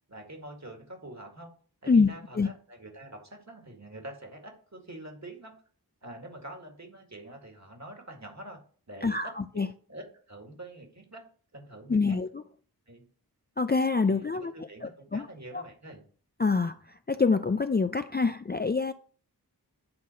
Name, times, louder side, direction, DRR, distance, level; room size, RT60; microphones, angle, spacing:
voice 1, 0.1-1.5 1.8-5.6 6.0-8.6 8.9-11.2 11.5-12.2 12.9-13.0 14.0-16.0, right 1 dB, 45° right, 2.0 m, -46 dB
voice 2, 9.0-9.7 11.9-12.3 13.6-14.5 14.8-15.3 15.5-15.6 16.4-16.8 17.1-18.9, left 4 dB, 25° left, 0.4 m, -25 dB
9.6 x 4.0 x 4.4 m
wide cardioid pair, 40°, 39 cm